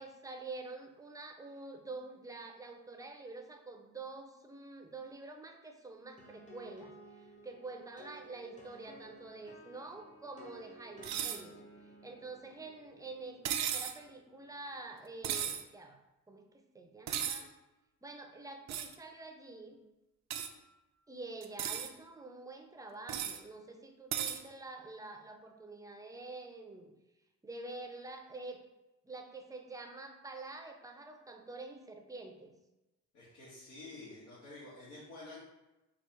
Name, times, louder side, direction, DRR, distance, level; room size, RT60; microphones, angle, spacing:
voice 1, 0.0-11.6 12.0-16.0 16.3-17.5 18.0-19.8 21.1-26.9 27.4-28.6 29.0-32.5, right 3 dB, 10° right, 4 dB, 0.6 m, -47 dB
sound 1, 6.2-15.8, right 1 dB, 25° left, 1.0 m, -56 dB
sound 2, 11.0-11.4 13.4-14.0 15.2-15.6 17.1-17.4 18.7-18.9 20.3-20.5 21.4-21.9 23.1-23.4 24.1-24.4, right 9 dB, 65° right, 0.5 m, -35 dB
voice 2, 33.1-35.4, left 2 dB, 75° left, -9 dB, 1.6 m, -49 dB
4.7 x 2.4 x 4.5 m, 1.0 s
cardioid pair, 90°, 30 cm